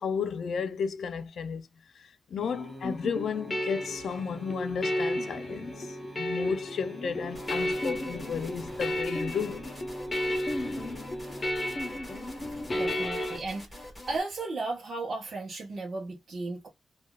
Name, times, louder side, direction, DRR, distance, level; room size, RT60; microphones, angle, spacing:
voice 1, 0.0-1.7 2.0-5.9 6.1-9.6, left 6 dB, 75° left, 0.5 m, -33 dB
sound 1, 2.4-12.6, right 1 dB, 15° right, 0.8 m, -47 dB
sound 2, 2.8-13.4, left 1 dB, 25° left, 0.7 m, -33 dB
sound 3, 7.3-14.2, left 1 dB, 10° left, 1.7 m, -45 dB
voice 2, 12.7-13.6 14.1-16.7, right 3 dB, 50° right, 0.8 m, -35 dB
3.2 x 2.4 x 2.3 m
wide cardioid pair, 160°, 0 cm